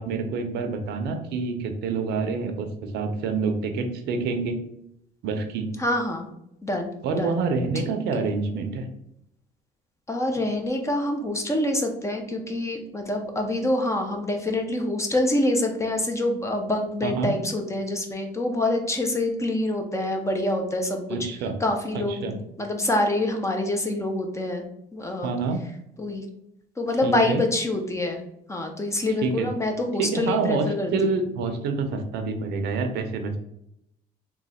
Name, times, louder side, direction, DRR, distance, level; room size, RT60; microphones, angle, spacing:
voice 1, 0.0-4.6 5.2-5.7 7.0-8.9 17.0-17.3 21.1-21.6 21.9-22.3 25.2-25.6 27.0-27.4 29.2-29.5 30.0-33.4, right 4 dB, 80° right, 6 dB, 0.6 m, -27 dB
voice 2, 5.8-6.3 6.6-7.4 7.7-7.8 10.1-21.2 21.6-24.6 24.9-25.3 26.0-26.2 26.8-28.2 28.5-31.1, left 1 dB, 15° left, 3 dB, 0.7 m, -26 dB
3.1 x 2.3 x 4.0 m, 0.77 s
cardioid pair, 110°, 17 cm